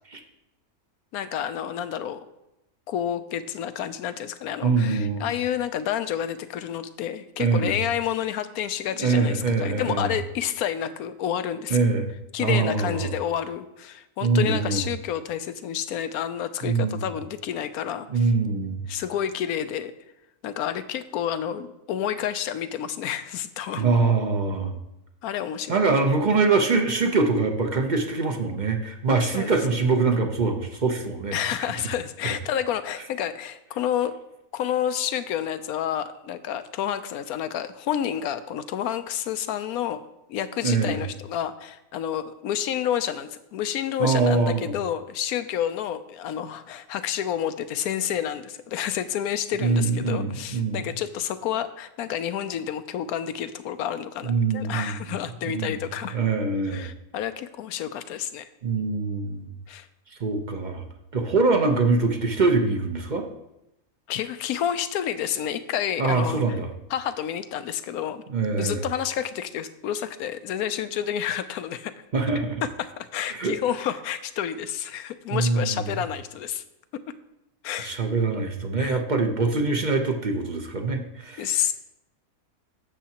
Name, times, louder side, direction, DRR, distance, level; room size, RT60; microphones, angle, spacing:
voice 1, 1.1-2.2 2.9-11.8 12.3-18.3 18.9-19.9 20.4-23.9 25.2-25.8 29.3-29.6 31.3-34.2 34.5-40.0 40.3-56.2 56.7-58.5 59.7-59.9 64.1-66.4 66.9-68.2 68.6-71.9 72.6-76.6 77.1-77.2 77.6-78.0 78.8-79.0 81.4-81.7, left 10 dB, 80° left, 12 dB, 1.1 m, -29 dB
voice 2, 4.6-5.3 7.4-7.7 9.0-10.1 11.7-12.1 12.4-13.1 14.2-14.8 16.6-17.0 18.1-18.8 23.8-24.7 25.7-31.5 40.6-41.0 44.0-44.7 49.6-50.8 54.2-55.2 55.4-55.7 56.1-56.9 58.6-59.4 60.2-60.8 61.1-63.3 66.0-66.7 68.3-68.8 72.1-72.6 73.3-73.6 75.3-75.8 77.8-81.6, right 4 dB, 40° right, 4 dB, 0.7 m, -24 dB
12.0 x 7.1 x 2.9 m, 0.89 s
omnidirectional pair, 1.6 m